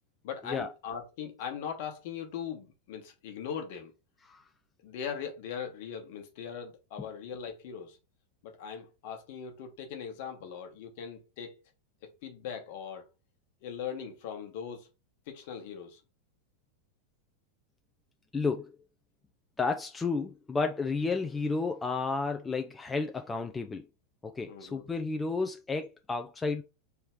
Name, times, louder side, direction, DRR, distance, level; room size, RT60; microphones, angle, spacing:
voice 1, 0.2-3.9 4.8-8.0 8.4-11.6 12.2-13.0 13.6-14.9 15.3-16.0 24.4-24.9, left 7 dB, 50° left, 1.2 m, -40 dB
voice 2, 18.3-18.7 19.6-23.8 24.2-26.6, left 4 dB, 15° left, 0.4 m, -32 dB
3.6 x 3.2 x 4.6 m
figure-of-eight pair, 90°, 0 cm